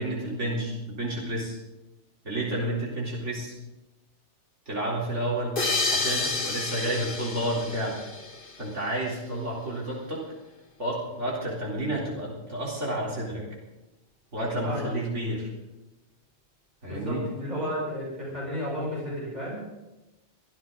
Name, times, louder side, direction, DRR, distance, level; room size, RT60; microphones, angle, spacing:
voice 1, 0.0-1.6 2.2-3.5 4.7-5.6 5.9-8.0 8.6-10.2 10.8-13.5 14.3-15.5 16.8-17.2, right 1 dB, 85° right, -4 dB, 4.0 m, -30 dB
sound 1, 5.6-8.9, left 3 dB, 50° left, 1.7 m, -30 dB
voice 2, 16.9-19.6, equal, 35° right, -6 dB, 7.8 m, -32 dB
23.5 x 15.5 x 3.9 m, 1.0 s
omnidirectional pair, 1.2 m